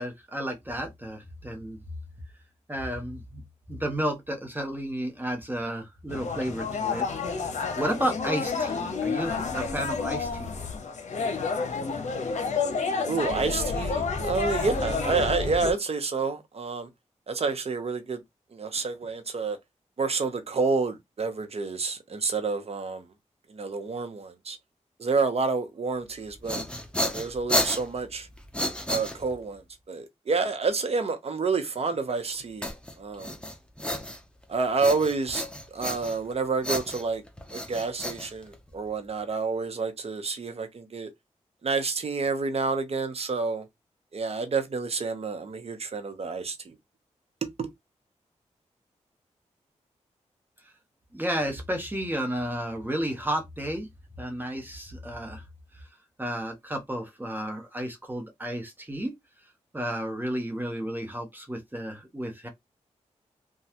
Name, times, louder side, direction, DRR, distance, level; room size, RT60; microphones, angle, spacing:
voice 1, 0.0-1.8 2.7-3.4 3.7-10.5 51.1-53.9 54.2-55.4 56.2-59.1 59.7-62.5, right 1 dB, 15° right, 1.0 m, -32 dB
sound 1, 6.1-15.7, left 4 dB, 65° left, 0.7 m, -30 dB
voice 2, 13.0-16.9 17.3-18.2 18.5-19.6 20.0-23.1 23.5-24.6 25.0-26.6 27.0-28.3 28.9-32.7 33.0-33.3 34.5-37.2 37.5-41.1 41.6-43.7 44.1-46.8 47.4-47.7, right 4 dB, 55° right, 0.8 m, -29 dB
sound 2, 26.2-29.6 32.6-34.4 34.8-36.3 36.6-38.9, equal, 10° left, 0.8 m, -32 dB
3.1 x 2.3 x 2.9 m
cardioid pair, 60°, 13 cm